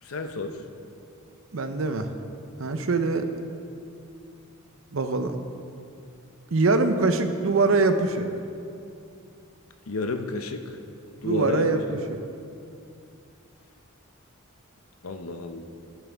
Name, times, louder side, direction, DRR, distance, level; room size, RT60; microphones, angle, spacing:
voice 1, 0.0-0.6 9.9-10.8 11.2-11.7 15.0-15.6, left 3 dB, 75° left, 6 dB, 0.7 m, -31 dB
voice 2, 1.5-2.1 2.6-3.2 4.9-5.4 6.5-8.3 11.2-12.2, right 3 dB, 65° right, 8 dB, 0.7 m, -23 dB
14.0 x 10.5 x 3.5 m, 2.6 s
head